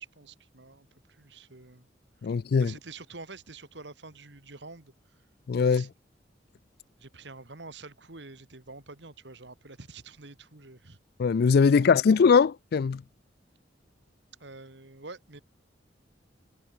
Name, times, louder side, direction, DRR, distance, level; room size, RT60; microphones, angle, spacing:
voice 1, 0.0-1.9 2.6-4.9 5.7-5.9 7.0-11.0 11.8-11.9 14.4-15.4, right 3 dB, 70° right, 2.2 m, -47 dB
voice 2, 2.2-2.7 5.5-5.9 11.2-13.0, left 5 dB, 60° left, 0.4 m, -21 dB
head